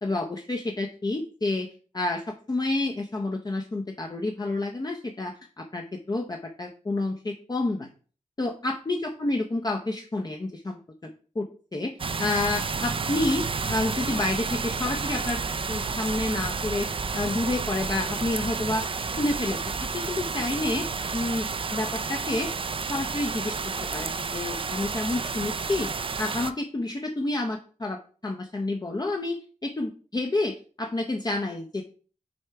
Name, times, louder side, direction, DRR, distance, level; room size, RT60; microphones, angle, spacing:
voice 1, 0.0-1.7 1.9-7.9 8.4-15.4 15.7-18.9 19.2-20.9 21.1-22.5 22.9-23.6 23.9-25.9 26.2-31.8, left 2 dB, 30° left, 3 dB, 0.7 m, -29 dB
sound 1, 12.0-26.5, right 4 dB, 45° right, 0.4 m, -31 dB
6.3 x 3.5 x 4.6 m, 0.40 s
wide cardioid pair, 70°, 12 cm